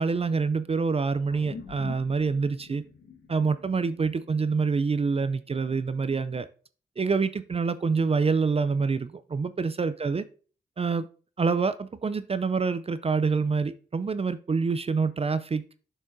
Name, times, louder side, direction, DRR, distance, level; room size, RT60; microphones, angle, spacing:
voice 1, 0.0-2.8 3.3-6.5 7.0-10.2 10.8-11.1 11.4-15.6, right 4 dB, 30° right, 0.4 m, -26 dB
sound 1, 1.3-6.0, left 5 dB, 75° left, 1.3 m, -46 dB
7.6 x 6.1 x 2.6 m
cardioid pair, 55°, 20 cm